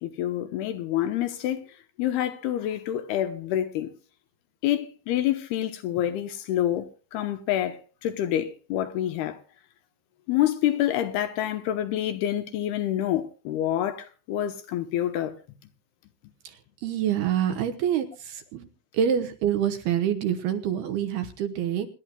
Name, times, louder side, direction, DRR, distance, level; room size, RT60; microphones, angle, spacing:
voice 1, 0.0-1.6 2.0-3.9 4.6-9.4 10.3-15.4, left 12 dB, 75° left, 2.5 m, -27 dB
voice 2, 16.8-18.7 18.9-21.9, right 9 dB, 75° right, 2.5 m, -26 dB
26.5 x 11.5 x 2.3 m
omnidirectional pair, 5.4 m